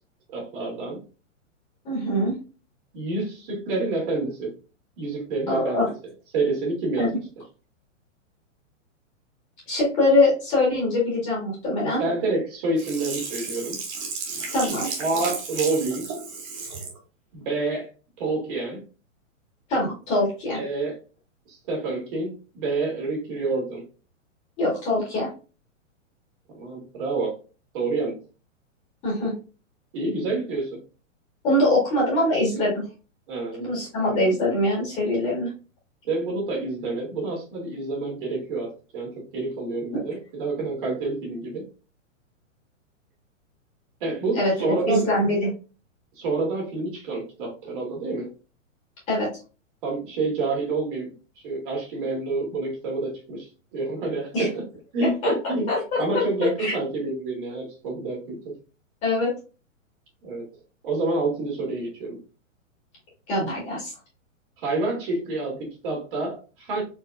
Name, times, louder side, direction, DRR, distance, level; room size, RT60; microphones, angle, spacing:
voice 1, 0.3-1.0 2.9-4.5 5.0-5.8 6.3-7.2 12.0-13.8 15.0-16.1 17.3-17.9 18.2-18.8 20.5-21.0 21.5-23.8 26.6-27.4 27.7-28.2 29.9-30.8 33.3-33.7 36.0-41.7 44.0-45.1 46.2-48.3 49.8-51.1 51.4-53.5 53.7-54.5 54.9-55.7 56.0-58.5 60.2-60.4 60.8-62.2 64.6-66.8, right 3 dB, 40° right, -2 dB, 2.1 m, -28 dB
voice 2, 1.9-2.3 5.5-5.9 7.0-7.1 9.7-12.0 14.5-14.9 19.7-20.6 24.6-25.3 29.0-29.3 31.4-32.9 33.6-35.5 39.9-40.0 44.4-44.5 44.9-45.5 49.1-49.3 54.3-54.5 55.0-56.2 56.6-56.7 59.0-59.3 63.3-63.9, left 1 dB, 20° left, -5 dB, 1.9 m, -23 dB
Sink (filling or washing), 12.8-17.0 17.4-17.5, right 4 dB, 25° right, 0.8 m, -33 dB
4.4 x 3.3 x 2.5 m, 0.33 s
hypercardioid pair, 170°, 40 cm